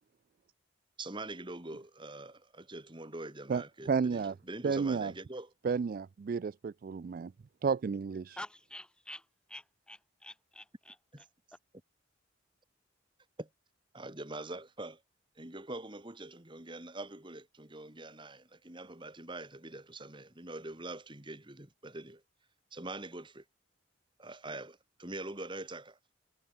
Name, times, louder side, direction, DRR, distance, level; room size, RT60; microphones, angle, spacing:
voice 1, 1.0-5.5 11.1-11.2 13.4-13.5 13.9-15.0 15.4-22.2 22.7-23.4 24.2-26.0, right 2 dB, 25° right, 1.9 m, -44 dB
voice 2, 3.9-4.3 4.6-5.1 5.6-7.3 7.6-8.4, right 5 dB, 45° right, 0.3 m, -31 dB
voice 3, 8.2-11.3, left 1 dB, 5° left, 1.9 m, -49 dB
head